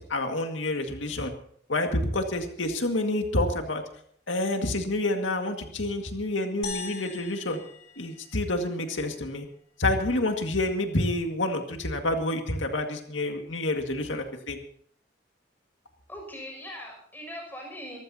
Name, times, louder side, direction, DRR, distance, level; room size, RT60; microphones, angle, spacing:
voice 1, 0.0-1.3 1.7-3.8 4.3-7.6 8.0-9.5 9.8-14.6, left 2 dB, 85° left, 4 dB, 2.0 m, -28 dB
sound 1, 6.6-9.1, left 5 dB, 55° left, 2.9 m, -40 dB
voice 2, 16.1-18.0, equal, 10° left, 0 dB, 6.7 m, -40 dB
24.5 x 15.0 x 2.9 m, 0.62 s
head